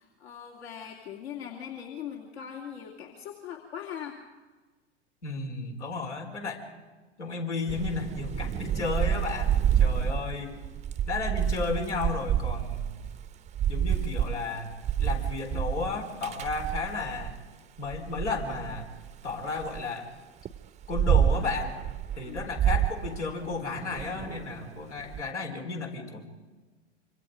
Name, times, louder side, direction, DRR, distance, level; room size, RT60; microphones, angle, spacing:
voice 1, 0.0-4.2 22.3-22.4, left 9 dB, 65° left, 1 dB, 2.6 m, -40 dB
voice 2, 5.2-6.6 7.2-10.5 11.1-13.0 13.7-14.7 15.0-17.3 17.8-18.9 19.2-20.1 20.9-21.8 22.2-26.2, left 4 dB, 80° left, 1 dB, 4.5 m, -33 dB
Thunder / Rain, 7.7-17.4 17.9-19.8 20.4-25.2, right 9 dB, 20° right, 0.7 m, -29 dB
26.0 x 25.5 x 5.1 m, 1.3 s
figure-of-eight pair, 95°, 35 cm